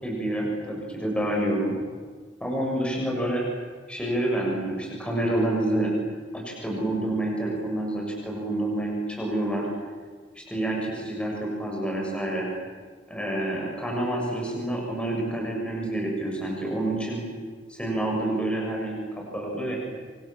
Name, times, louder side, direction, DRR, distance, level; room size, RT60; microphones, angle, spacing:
voice 1, 0.0-1.7 2.4-3.4 3.9-5.9 6.3-9.7 10.3-12.5 13.1-17.2 17.7-19.8, right 1 dB, 5° left, -1 dB, 6.6 m, -28 dB
27.0 x 26.0 x 7.4 m, 1.5 s
head